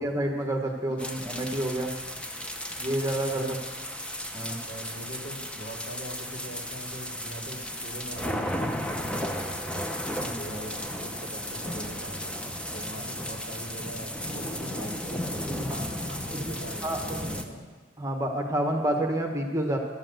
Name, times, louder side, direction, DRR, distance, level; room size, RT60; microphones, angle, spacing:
voice 1, 0.0-1.9 2.8-3.6 4.3-4.6 10.2-10.3 12.9-13.1 15.7-15.8 16.8-17.0 18.0-19.8, right 1 dB, 15° right, 2 dB, 1.2 m, -28 dB
sound 1, 1.0-17.4, equal, 5° left, 0.7 m, -34 dB
voice 2, 4.7-17.6, right 1 dB, 80° left, -2 dB, 2.7 m, -42 dB
11.5 x 7.5 x 7.7 m, 1.4 s
head